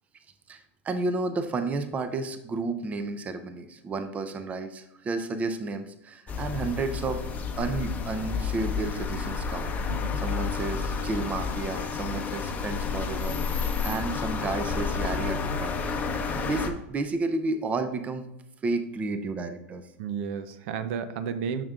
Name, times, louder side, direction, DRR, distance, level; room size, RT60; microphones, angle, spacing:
voice 1, 0.5-9.7 10.2-15.9 16.4-18.2 18.6-19.9, right 3 dB, 20° right, 8 dB, 0.6 m, -32 dB
sound 1, 6.3-16.7, left 5 dB, 20° left, 0.8 m, -30 dB
voice 2, 9.9-10.2 16.4-16.5 20.0-21.6, right 7 dB, 65° right, 11 dB, 0.6 m, -32 dB
7.1 x 6.5 x 2.4 m, 0.87 s
supercardioid pair, 125°, 7 cm